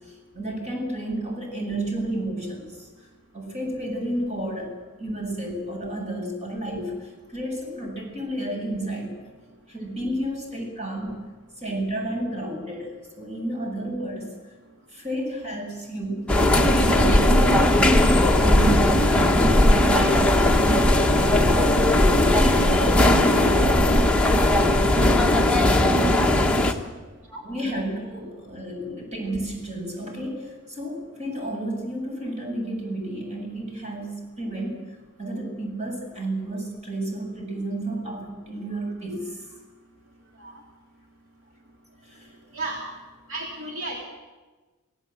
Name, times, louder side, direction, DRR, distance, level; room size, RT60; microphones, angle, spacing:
voice 1, 0.3-2.9 3.3-9.2 9.7-11.2 11.6-14.3 14.9-20.5 21.1-21.6 21.9-23.6 26.3-27.0 27.4-39.5 42.1-42.3, right 1 dB, 35° right, 0 dB, 7.1 m, -31 dB
sound 1, 16.3-26.7, left 1 dB, 5° left, 1.3 m, -18 dB
voice 2, 43.3-44.1, right 2 dB, 65° right, -1 dB, 3.2 m, -33 dB
26.0 x 17.5 x 7.9 m, 1.3 s
head